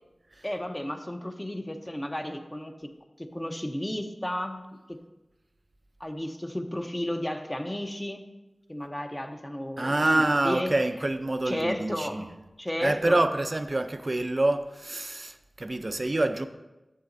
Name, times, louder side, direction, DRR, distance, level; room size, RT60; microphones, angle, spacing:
voice 1, 0.4-2.7 3.2-4.6 4.9-5.0 6.0-8.2 8.7-10.7 11.5-12.3 12.6-13.2, left 1 dB, 20° left, 0.8 m, -33 dB
voice 2, 9.8-12.3 12.8-16.5, right 2 dB, 45° right, 0.5 m, -26 dB
12.0 x 7.0 x 2.6 m
wide cardioid pair, 50°, 0 cm